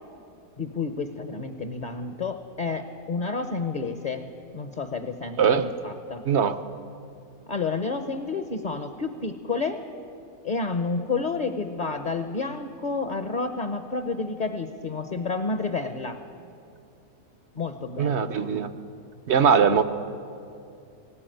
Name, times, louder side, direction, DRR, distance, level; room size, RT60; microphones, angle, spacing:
voice 1, 0.6-4.2 4.5-6.2 7.5-9.8 10.4-16.2 17.5-18.6 19.6-19.8, left 4 dB, 35° left, 8 dB, 0.9 m, -30 dB
voice 2, 5.4-5.7 6.2-6.6 18.0-18.7 19.3-19.8, right 7 dB, 55° right, 12 dB, 1.0 m, -21 dB
19.0 x 18.5 x 9.1 m, 2.5 s
omnidirectional pair, 1.5 m